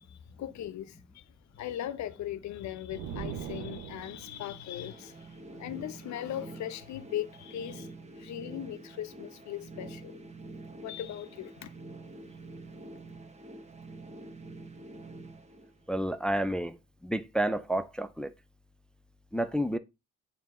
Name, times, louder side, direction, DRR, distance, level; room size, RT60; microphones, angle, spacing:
voice 1, 0.1-10.2 10.8-11.7, left 11 dB, 70° left, 0.6 m, -39 dB
sound 1, 2.9-4.5, right 8 dB, 80° right, 0.8 m, -40 dB
sound 2, 4.3-16.2, right 2 dB, 20° right, 1.0 m, -47 dB
voice 2, 15.9-16.8 17.0-18.3 19.3-19.8, right 1 dB, 5° left, 0.4 m, -30 dB
7.5 x 2.8 x 5.2 m
cardioid pair, 90°, 30 cm